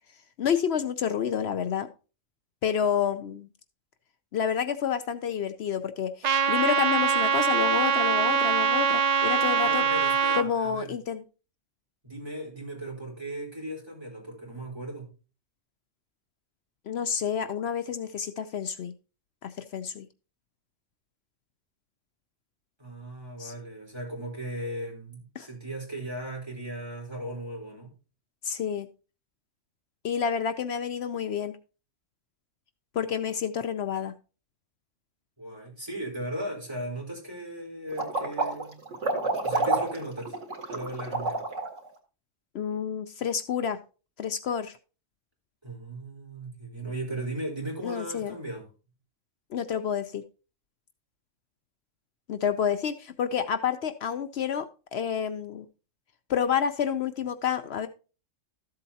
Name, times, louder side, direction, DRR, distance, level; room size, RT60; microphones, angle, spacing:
voice 1, 0.4-1.9 2.6-3.5 4.3-9.8 10.3-11.2 16.9-18.9 19.4-20.1 23.4-23.5 25.4-25.5 28.4-28.9 30.0-31.6 32.9-34.1 42.5-43.8 44.2-44.8 47.8-48.3 49.5-50.2 52.3-55.7 56.3-57.9, left 8 dB, 65° left, 11 dB, 0.8 m, -29 dB
Trumpet, 6.2-10.4, right 6 dB, 55° right, 0.5 m, -23 dB
voice 2, 9.6-11.0 12.0-15.1 22.8-27.9 35.4-38.8 39.4-40.4 40.7-41.4 45.6-48.7, right 1 dB, 20° right, -2 dB, 4.0 m, -37 dB
sound 1, 37.9-41.8, right 3 dB, 85° right, 2.4 m, -28 dB
13.5 x 7.7 x 2.8 m, 0.34 s
omnidirectional pair, 1.3 m